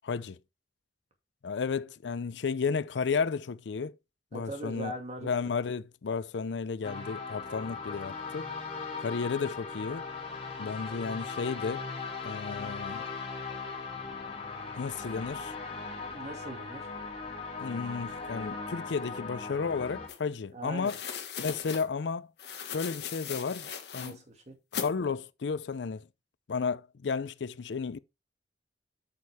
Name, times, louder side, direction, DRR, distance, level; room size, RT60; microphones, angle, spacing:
voice 1, 0.0-0.4 1.4-4.0 4.3-4.9 5.2-8.5 9.0-10.1 10.6-11.8 12.2-13.0 14.8-15.5 17.6-21.0 21.4-22.3 22.6-24.2 24.7-26.1 26.5-28.0, left 5 dB, 85° left, 0.5 m, -33 dB
voice 2, 4.3-5.3 16.1-16.9 20.5-21.0 24.0-24.5, right 1 dB, 40° right, 2.2 m, -41 dB
sound 1, 6.8-20.1, left 4 dB, 35° left, 2.8 m, -39 dB
sound 2, 20.1-20.2 20.8-21.8 22.4-24.1 24.7-24.9, left 7 dB, 70° left, 1.4 m, -38 dB
8.3 x 6.5 x 3.5 m
head